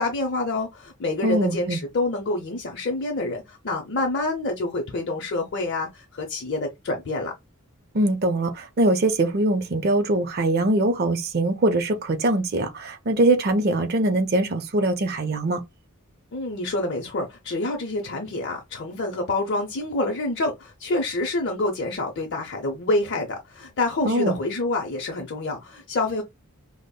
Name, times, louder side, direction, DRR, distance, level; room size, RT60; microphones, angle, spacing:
voice 1, 0.0-7.3 16.3-26.2, left 2 dB, 55° left, 0.6 m, -27 dB
voice 2, 1.2-1.8 7.9-15.6 24.0-24.3, right 2 dB, 45° right, 0.5 m, -22 dB
5.0 x 2.0 x 2.2 m
head